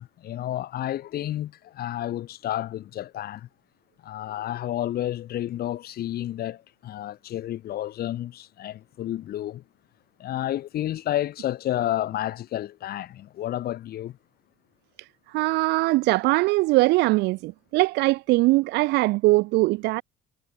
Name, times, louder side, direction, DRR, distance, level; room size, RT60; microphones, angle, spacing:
voice 1, 0.0-3.5 4.0-9.6 10.2-14.2, left 13 dB, 65° left, 4.7 m, -31 dB
voice 2, 15.3-20.0, right 21 dB, 80° right, 0.4 m, -21 dB
cardioid pair, 110°, 17 cm